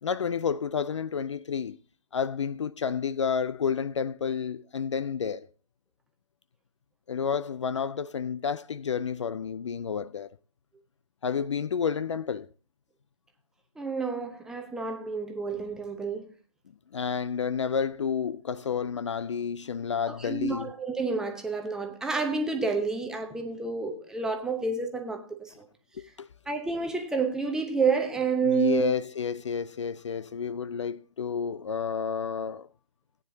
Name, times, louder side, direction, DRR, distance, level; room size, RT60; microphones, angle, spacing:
voice 1, 0.0-1.8 2.1-5.5 7.1-10.3 11.2-12.5 16.9-20.7 26.0-26.3 28.4-32.7, left 6 dB, 55° left, 0.4 m, -30 dB
voice 2, 13.8-16.2 20.1-25.5 26.5-28.9, right 5 dB, 5° right, 0.8 m, -29 dB
17.5 x 9.5 x 2.7 m
figure-of-eight pair, 140°, 18 cm